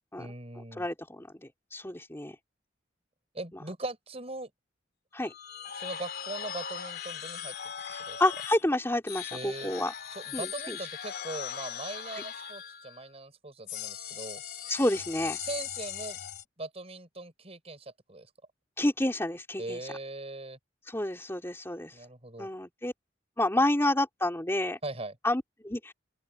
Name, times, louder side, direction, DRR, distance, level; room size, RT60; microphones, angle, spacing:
voice 1, 0.2-0.9 3.3-4.5 5.7-7.5 8.0-8.2 9.3-9.7 10.1-14.4 15.4-16.2 16.6-18.3 19.6-20.6 21.9-22.5 24.8-25.2, right 2 dB, 35° right, 5.6 m, -40 dB
voice 2, 0.8-2.3 5.1-5.3 8.2-9.9 10.3-10.8 14.7-15.4 18.8-19.8 20.9-21.9 22.4-22.9 23.4-24.8 25.2-25.9, left 1 dB, 15° left, 2.9 m, -29 dB
sound 1, 5.2-8.7 9.1-13.1 13.7-16.4, left 9 dB, 55° left, 3.1 m, -39 dB
open air
head